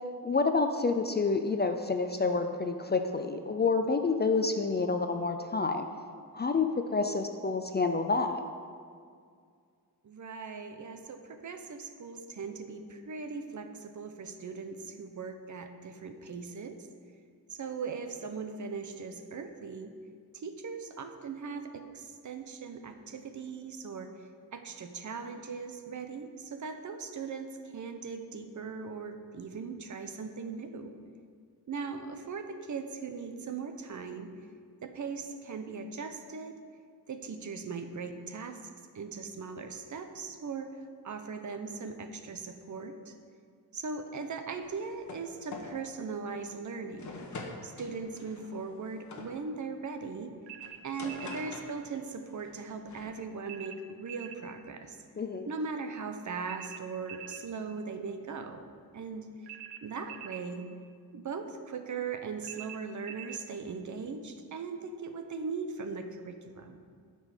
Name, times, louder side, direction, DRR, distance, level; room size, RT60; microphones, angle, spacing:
voice 1, 0.2-5.9 6.3-8.4 55.2-55.5, left 4 dB, 25° left, 6 dB, 0.4 m, -28 dB
voice 2, 10.0-16.8 17.5-19.9 20.3-30.9 31.7-34.3 34.8-36.6 37.1-38.6 38.9-40.8 41.0-43.1 43.7-47.1 47.6-50.3 50.8-55.0 55.5-58.6 58.9-59.5 59.8-60.7 61.1-66.8, right 5 dB, 50° right, 7 dB, 0.8 m, -39 dB
sound 1, 44.6-45.3 45.5-45.8 46.3-46.5 47.0-49.3 50.6-52.1 52.4-53.1, left 3 dB, 45° left, 1.2 m, -45 dB
sound 2, 50.5-51.4 53.5-54.4 56.5-57.5 59.5-60.5 62.4-63.4, right 11 dB, 85° right, 0.8 m, -45 dB
9.6 x 5.4 x 6.5 m, 2.1 s
wide cardioid pair, 135°, 39 cm